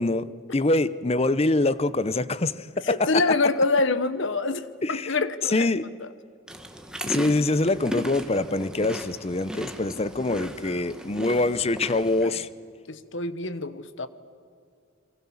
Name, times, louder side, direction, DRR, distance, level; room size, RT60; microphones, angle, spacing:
voice 1, 0.0-3.4 4.8-5.2 5.4-5.9 7.1-12.5, left 2 dB, 30° left, 16 dB, 0.7 m, -25 dB
voice 2, 2.9-5.7 6.0-6.1 12.2-12.4 12.9-14.1, left 3 dB, 60° left, 14 dB, 1.1 m, -26 dB
sound 1, 6.5-12.2, equal, 5° right, 1.6 m, -36 dB
29.0 x 23.5 x 7.2 m, 2.2 s
head